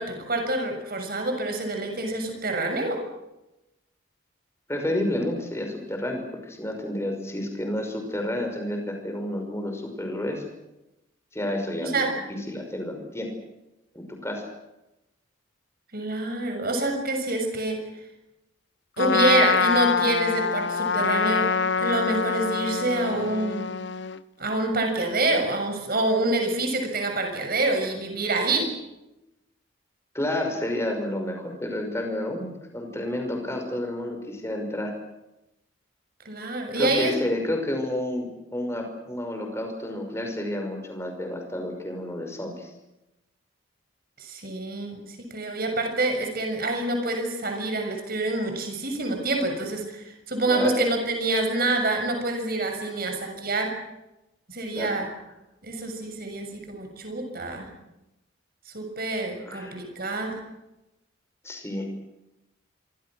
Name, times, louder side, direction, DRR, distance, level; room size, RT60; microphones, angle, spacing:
voice 1, 0.0-3.0 11.8-12.1 15.9-17.8 19.0-21.5 21.8-23.7 24.4-28.7 36.2-37.2 44.2-53.7 54.5-55.1 55.6-57.7 58.7-60.4, right 2 dB, 45° right, 4 dB, 6.9 m, -27 dB
voice 2, 4.7-10.4 11.3-13.3 13.9-14.5 23.1-23.5 30.1-34.9 36.8-42.7 50.5-50.8 54.8-54.9 59.4-59.7 61.4-61.9, left 1 dB, 15° left, 3 dB, 5.6 m, -30 dB
Trumpet, 19.0-24.2, left 5 dB, 60° left, 0.8 m, -25 dB
26.5 x 24.5 x 6.4 m, 0.93 s
head